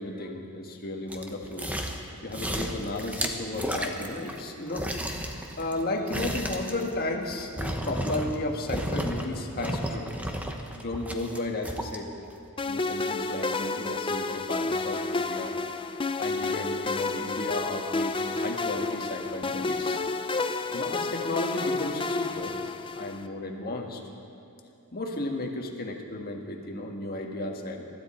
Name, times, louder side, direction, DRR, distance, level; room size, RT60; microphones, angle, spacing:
voice 1, 0.0-1.7 2.2-5.2 5.6-10.1 10.7-12.1 12.7-15.5 16.2-20.0 20.6-22.6 22.9-24.0 24.9-27.9, left 2 dB, 45° left, 2 dB, 1.6 m, -34 dB
sound 1, 1.1-2.1 2.3-4.4 4.7-8.4 8.7-9.3 9.6-12.0 12.4-12.5, equal, 5° right, 1.0 m, -33 dB
sound 2, 12.6-23.3, left 3 dB, 25° left, 0.5 m, -30 dB
23.5 x 12.5 x 4.4 m, 2.7 s
head